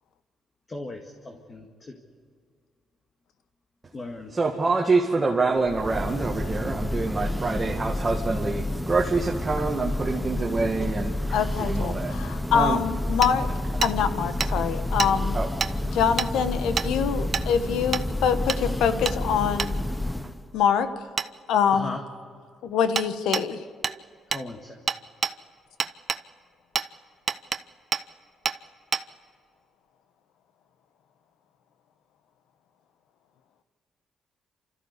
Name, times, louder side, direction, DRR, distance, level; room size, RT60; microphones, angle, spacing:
voice 1, 0.7-1.9 3.9-4.3 21.7-22.0 24.3-24.8, left 2 dB, 30° left, 1.9 m, -37 dB
voice 2, 4.3-12.1 12.5-12.8 15.3-15.5, right 3 dB, 25° right, 1.8 m, -26 dB
Church bell, 5.6-20.5, left 1 dB, 5° left, 0.9 m, -30 dB
voice 3, 11.3-13.5 13.8-15.4 15.9-19.7 20.5-20.9 21.5-22.0 22.6-23.6, left 7 dB, 85° left, 1.2 m, -24 dB
Hammer, 13.2-13.3 13.8-13.9 14.4-14.5 15.0-15.1 15.6-15.7 16.2-16.3 16.8-16.9 17.3-17.5 17.9-18.0 18.5-18.6 19.0-19.2 19.6-19.7 21.2-21.3 22.9-23.1 23.3-23.5 23.8-24.0 24.3-24.4 24.9-25.3 25.8-26.2 26.7-26.9 27.3-27.6 27.9-28.0 28.4-28.6 28.9-29.0, right 6 dB, 45° right, 0.7 m, -27 dB
28.5 x 14.0 x 8.3 m
cardioid pair, 90°, 0 cm